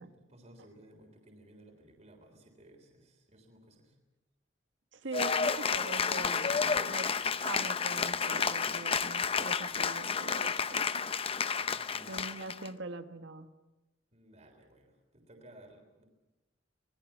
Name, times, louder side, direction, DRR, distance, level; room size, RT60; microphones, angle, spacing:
voice 1, 0.0-4.0 5.0-5.2 11.5-12.3 14.1-16.0, right 1 dB, 35° right, 3 dB, 3.5 m, -57 dB
voice 2, 4.9-7.1 7.4-11.0 12.1-13.5, right 3 dB, 75° right, 8 dB, 1.3 m, -42 dB
Cheering / Applause, 5.1-12.7, left 6 dB, 30° left, 0.7 m, -31 dB
25.5 x 19.5 x 7.3 m, 1.1 s
head